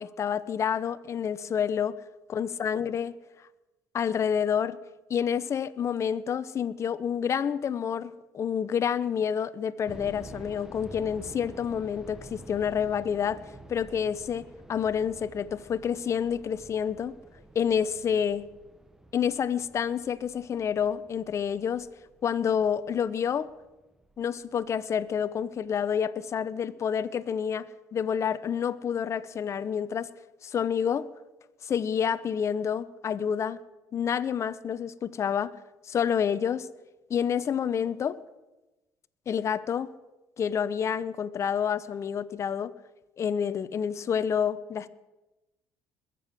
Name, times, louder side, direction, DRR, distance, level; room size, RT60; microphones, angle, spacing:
voice 1, 0.0-1.9 2.3-3.1 3.9-4.8 5.1-13.4 13.7-17.1 17.5-18.4 19.1-21.9 22.2-23.5 24.2-30.1 30.4-31.1 31.6-33.6 33.9-35.5 35.8-36.7 37.1-38.2 39.3-39.9 40.4-42.7 43.2-44.9, left 8 dB, 45° left, 0.7 m, -28 dB
sound 1, 9.9-24.7 25.0-25.1 25.7-26.0, right 2 dB, 5° right, 1.0 m, -49 dB
21.0 x 7.7 x 6.4 m
supercardioid pair, 75°, 7 cm